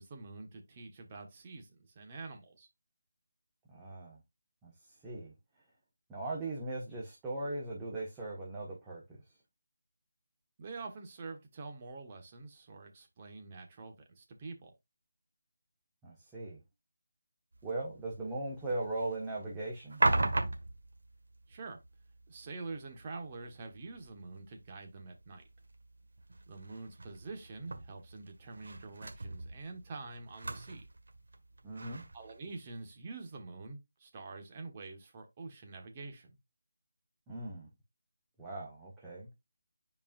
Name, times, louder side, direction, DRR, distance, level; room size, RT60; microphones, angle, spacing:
voice 1, 0.0-2.7 10.6-14.7 21.5-21.8 22.3-25.4 26.5-30.8 32.1-36.4, right 3 dB, 30° right, 1.3 m, -46 dB
voice 2, 3.7-4.2 4.6-5.3 6.1-9.0 16.0-16.6 17.6-20.0 31.6-32.0 37.3-37.7 38.4-39.3, right 2 dB, 10° right, 1.4 m, -39 dB
sound 1, 17.5-32.9, right 2 dB, 70° right, 1.4 m, -39 dB
8.5 x 4.8 x 2.5 m
figure-of-eight pair, 165°, 0 cm